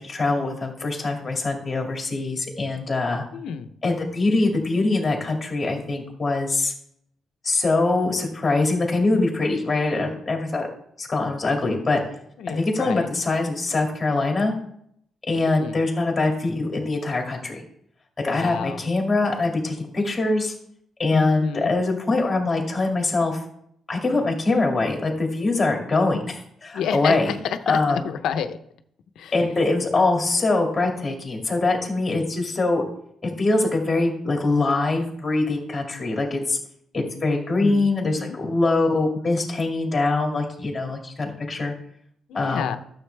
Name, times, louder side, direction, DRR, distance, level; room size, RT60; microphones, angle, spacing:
voice 1, 0.0-3.2 3.8-6.7 7.4-10.7 11.0-12.0 12.5-14.5 15.3-17.6 18.2-20.5 21.0-23.4 23.9-27.3 27.7-28.0 29.3-32.8 33.2-36.6 36.9-41.7 42.3-42.7, left 3 dB, 20° left, 1 dB, 2.3 m, -23 dB
voice 2, 3.3-3.7 12.4-13.1 15.6-15.8 18.3-18.8 21.1-21.7 26.7-28.6 29.2-29.3 37.6-38.4 42.3-42.8, left 7 dB, 80° left, 9 dB, 0.7 m, -30 dB
13.0 x 7.2 x 3.4 m, 0.69 s
cardioid pair, 160°, 0 cm